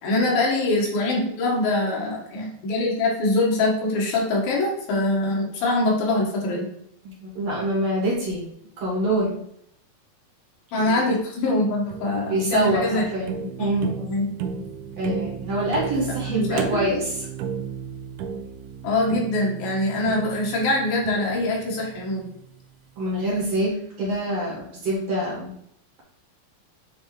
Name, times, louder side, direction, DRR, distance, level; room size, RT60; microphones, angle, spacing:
voice 1, 0.0-6.7 10.7-13.0 13.6-13.7 14.1-14.3 16.3-17.0 18.8-22.3, left 2 dB, 75° left, -2 dB, 3.2 m, -23 dB
voice 2, 7.0-8.5 8.8-9.4 10.8-11.2 12.3-13.9 15.0-17.3 23.0-25.5, right 1 dB, 55° right, -4 dB, 2.1 m, -25 dB
sound 1, 11.5-22.7, right 7 dB, 85° right, 1.9 m, -34 dB
8.7 x 3.7 x 3.1 m, 0.72 s
omnidirectional pair, 4.3 m